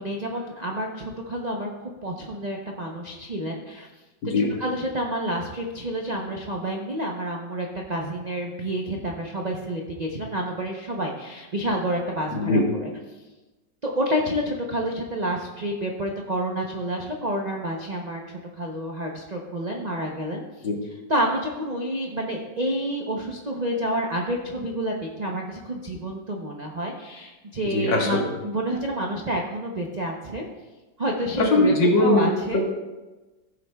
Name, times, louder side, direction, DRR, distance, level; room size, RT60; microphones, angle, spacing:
voice 1, 0.0-1.7 2.0-3.9 4.6-12.9 13.8-20.4 21.1-30.4 31.0-32.6, right 1 dB, 55° right, 0 dB, 0.4 m, -29 dB
voice 2, 4.2-4.6 12.3-12.7 20.6-20.8 27.7-28.3 31.4-32.6, left 2 dB, 85° left, 1 dB, 2.1 m, -21 dB
15.0 x 7.7 x 2.3 m, 1.1 s
omnidirectional pair, 1.9 m